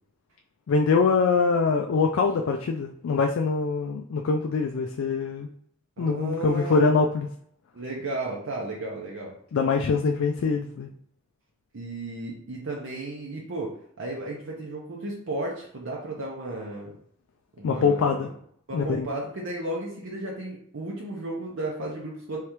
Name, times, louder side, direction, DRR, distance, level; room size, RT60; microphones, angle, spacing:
voice 1, 0.7-5.5 6.0-7.3 9.5-10.9 17.6-18.3 18.7-19.1, left 4 dB, 65° left, 2 dB, 0.3 m, -23 dB
voice 2, 6.0-6.9 7.7-9.4 11.7-16.9 17.6-18.2 18.7-22.4, right 2 dB, 65° right, -2 dB, 0.7 m, -34 dB
3.6 x 3.3 x 3.0 m, 0.64 s
head